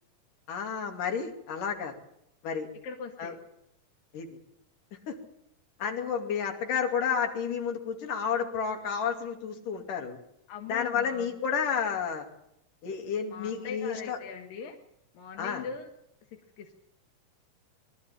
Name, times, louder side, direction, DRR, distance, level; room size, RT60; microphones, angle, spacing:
voice 1, 0.5-2.0 2.4-2.7 3.2-3.3 4.1-4.3 5.1-5.2 5.8-10.2 10.7-12.3 12.8-14.2 15.4-15.6, left 7 dB, 75° left, 2 dB, 4.1 m, -31 dB
voice 2, 2.8-3.3 10.5-11.3 13.3-14.8 15.1-15.9 16.6-16.7, left 6 dB, 90° left, 3 dB, 3.3 m, -41 dB
23.5 x 12.5 x 8.7 m, 0.80 s
omnidirectional pair, 3.9 m